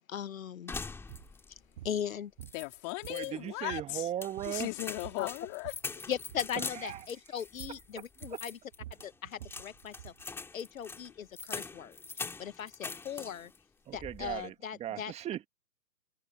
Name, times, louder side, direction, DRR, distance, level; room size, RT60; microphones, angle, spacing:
voice 1, 0.1-0.7 1.8-2.3 5.2-5.3 6.1-8.6 9.0-10.1 10.5-12.0 12.4-13.5 13.9-15.1, left 9 dB, 55° left, 1.3 m, -38 dB
sound 1, 0.7-1.6 1.9-2.0 2.4-3.3 3.9-13.6 13.9-14.4, left 4 dB, 5° left, 2.4 m, -43 dB
sound 2, 1.1-1.3 1.8-2.0 2.4-3.4 3.7-3.9 4.2-4.7 5.0-5.9 6.2-6.5 6.9-7.1 7.6-7.9 8.2-10.2, right 13 dB, 35° right, 1.7 m, -49 dB
voice 2, 2.5-4.1 4.5-5.7, left 36 dB, 25° left, 3.8 m, -37 dB
voice 3, 3.1-4.7 6.8-7.0 7.9-8.0 13.9-14.5 14.8-15.5, right 11 dB, 15° right, 2.2 m, -37 dB
figure-of-eight pair, 135°, 49 cm